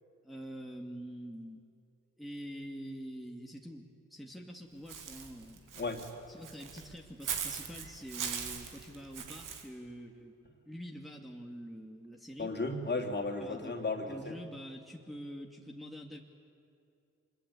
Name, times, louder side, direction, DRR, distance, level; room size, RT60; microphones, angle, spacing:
voice 1, 0.2-1.6 2.2-5.6 6.3-10.4 10.7-12.5 13.4-16.2, equal, ahead, 0 dB, 2.3 m, -46 dB
Walk footsteps / Bird, 4.9-9.6, right 7 dB, 65° right, 2.2 m, -40 dB
voice 2, 5.7-6.0 12.4-14.4, left 3 dB, 30° left, 3 dB, 3.2 m, -35 dB
25.0 x 21.5 x 8.4 m, 2.5 s
hypercardioid pair, 45°, 34 cm